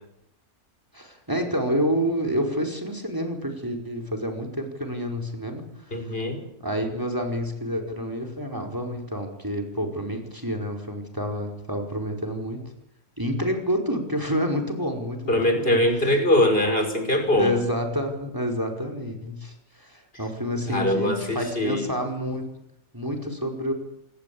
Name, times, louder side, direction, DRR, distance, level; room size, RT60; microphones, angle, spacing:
voice 1, 0.9-6.0 6.6-12.6 13.2-15.8 17.3-22.5 22.9-23.7, equal, 15° right, 3 dB, 5.0 m, -28 dB
voice 2, 5.9-6.4 15.3-17.5 20.7-21.8, left 1 dB, 40° left, 6 dB, 5.5 m, -22 dB
27.0 x 19.5 x 8.7 m, 0.79 s
omnidirectional pair, 1.5 m